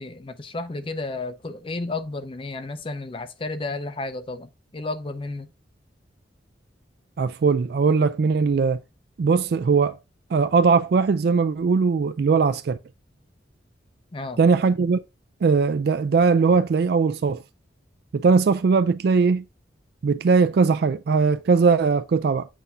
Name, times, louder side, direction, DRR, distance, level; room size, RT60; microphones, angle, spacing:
voice 1, 0.0-5.5 14.1-14.4, left 2 dB, 30° left, 0.5 m, -32 dB
voice 2, 7.2-8.8 9.2-10.0 10.3-12.8 14.4-15.0 15.4-17.4 18.1-19.4 20.0-22.5, right 5 dB, 60° right, 0.3 m, -20 dB
7.6 x 2.6 x 5.5 m
head